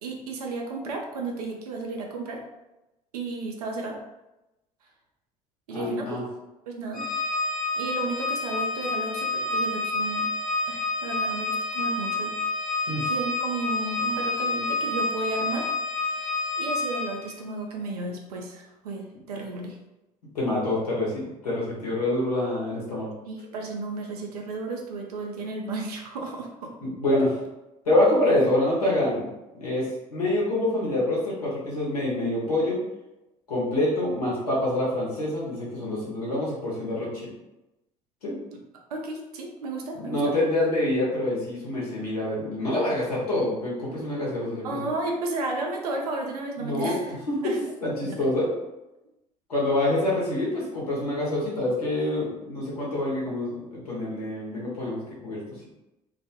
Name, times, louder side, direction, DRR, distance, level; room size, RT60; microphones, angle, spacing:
voice 1, 0.0-2.4 3.1-4.0 5.7-6.1 6.7-7.1 7.7-10.3 10.7-12.3 13.0-15.7 16.0-16.3 16.6-19.8 23.3-26.7 38.5-38.6 38.9-40.3 44.6-47.2 47.4-47.7, right 3 dB, 80° right, 1 dB, 0.4 m, -33 dB
voice 2, 5.7-6.2 12.9-13.1 20.3-23.1 26.8-27.4 27.8-29.3 29.6-32.8 33.5-37.3 38.2-38.3 39.9-44.9 46.6-47.4 47.8-48.5 49.5-55.4, left 1 dB, 85° left, -5 dB, 0.8 m, -26 dB
Organ, 6.9-17.3, left 2 dB, 45° left, 0.7 m, -28 dB
2.3 x 2.1 x 2.8 m, 0.96 s
figure-of-eight pair, 55°, 19 cm